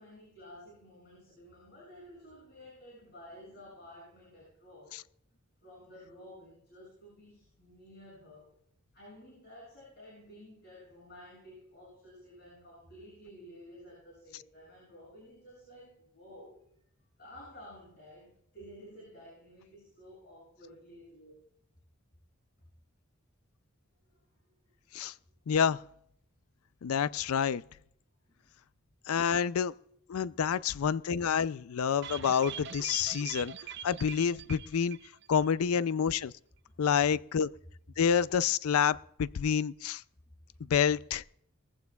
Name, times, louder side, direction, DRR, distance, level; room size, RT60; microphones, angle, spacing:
voice 1, 0.0-5.0 5.6-8.5 8.9-16.6 17.2-21.4 28.3-28.5 36.7-36.9, equal, 50° left, 6.8 m, -52 dB
voice 2, 25.5-25.8 26.8-27.6 29.1-29.7 30.1-33.5 33.8-35.0 35.3-36.3 36.8-37.5 38.0-40.0 40.7-41.2, left 7 dB, 85° left, 0.4 m, -28 dB
sound 1, 32.0-35.5 35.7-35.8 36.2-36.3, right 8 dB, 55° right, 0.5 m, -43 dB
21.0 x 15.0 x 2.3 m
head